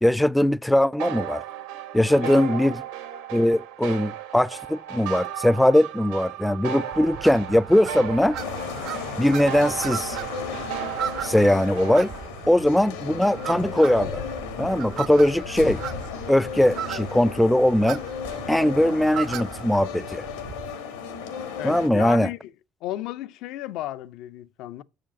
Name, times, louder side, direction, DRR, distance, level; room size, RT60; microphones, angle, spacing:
voice 1, 0.0-1.4 1.9-2.8 3.3-8.4 9.2-10.2 11.2-12.1 12.5-14.2 14.6-15.8 16.3-18.0 18.5-20.2 21.6-22.3, left 1 dB, 5° left, 0.3 m, -20 dB
sound 1, 1.0-12.3, right 10 dB, 85° right, 1.3 m, -35 dB
voice 2, 2.2-2.7 21.6-22.5 22.8-24.8, left 14 dB, 70° left, 0.4 m, -34 dB
sound 2, 6.9-20.7, right 10 dB, 65° right, 0.6 m, -37 dB
sound 3, 8.4-21.9, left 6 dB, 90° left, 1.3 m, -35 dB
7.0 x 5.0 x 5.7 m
hypercardioid pair, 65°, 0 cm